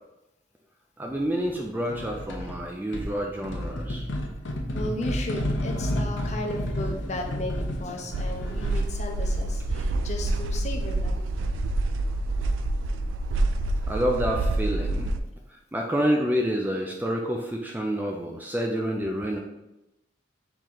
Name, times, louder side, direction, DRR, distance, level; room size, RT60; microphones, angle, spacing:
voice 1, 1.0-4.0 13.9-15.1 15.7-19.4, equal, 10° right, 1 dB, 0.3 m, -28 dB
sound 1, 1.9-2.6 2.9-9.0, left 1 dB, 75° left, 0.7 m, -31 dB
voice 2, 4.7-11.2, left 1 dB, 35° left, 2 dB, 0.6 m, -35 dB
sound 2, 8.1-15.2, right 2 dB, 85° right, 0.4 m, -27 dB
4.5 x 3.1 x 3.8 m, 0.94 s
head